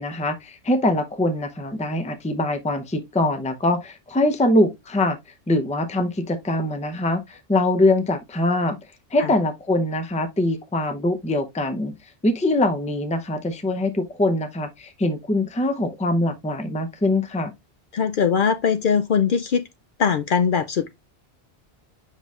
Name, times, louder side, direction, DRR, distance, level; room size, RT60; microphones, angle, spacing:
voice 1, 0.0-5.2 5.5-8.8 9.1-12.0 12.2-17.5, left 1 dB, 10° left, 0.5 m, -23 dB
voice 2, 17.9-19.6 20.0-20.9, left 6 dB, 60° left, 0.6 m, -21 dB
7.3 x 5.5 x 2.4 m
omnidirectional pair, 1.1 m